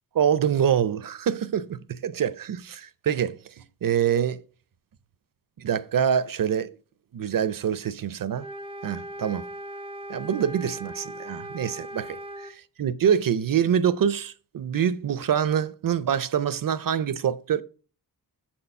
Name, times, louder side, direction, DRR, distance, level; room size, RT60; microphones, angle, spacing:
voice 1, 0.1-3.4 3.8-4.4 5.6-6.8 7.1-8.5 8.8-9.4 10.1-12.2 12.8-17.6, right 8 dB, 60° right, 0.5 m, -25 dB
sound 1, 8.4-12.6, right 1 dB, 15° right, 0.5 m, -39 dB
7.5 x 4.4 x 5.4 m
wide cardioid pair, 115°, 37 cm